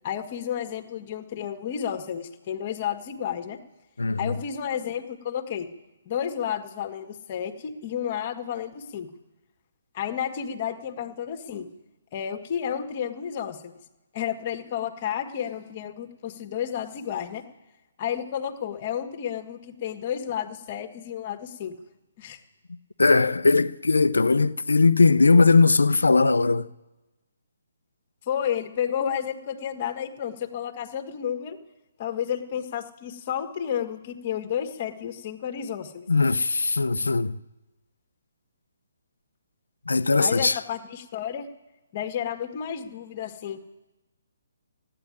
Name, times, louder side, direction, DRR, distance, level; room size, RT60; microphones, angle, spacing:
voice 1, 0.0-3.6 4.2-5.7 6.1-9.1 9.9-11.7 12.1-13.7 14.1-17.4 18.0-21.7 22.2-22.4 28.3-31.6 32.0-36.1 40.2-41.5 41.9-43.6, left 9 dB, 40° left, 1.8 m, -31 dB
voice 2, 4.0-4.4 23.0-26.7 36.1-37.4 39.9-40.6, left 3 dB, 80° left, 0.7 m, -19 dB
14.5 x 9.8 x 9.8 m
figure-of-eight pair, 140°, 0 cm